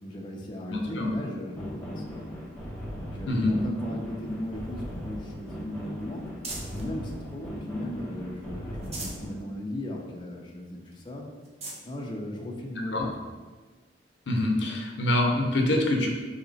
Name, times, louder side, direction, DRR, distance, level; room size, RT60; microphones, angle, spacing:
voice 1, 0.0-2.2 2.9-6.2 6.7-11.3 11.8-13.3, left 1 dB, 25° left, -1 dB, 0.5 m, -36 dB
voice 2, 0.7-1.1 3.3-3.5 12.9-13.0 14.3-16.1, left 1 dB, 75° left, 1 dB, 0.7 m, -25 dB
sound 1, 1.6-9.4, equal, 10° left, 0.9 m, -38 dB
sound 2, 4.2-6.9 7.4-8.2 8.6-9.3 9.7-9.8 10.2-10.3 10.9-11.0 11.4-11.9 12.7-12.8 14.5-14.6, right 2 dB, 35° right, 0.8 m, -43 dB
4.0 x 2.9 x 3.9 m, 1.4 s
head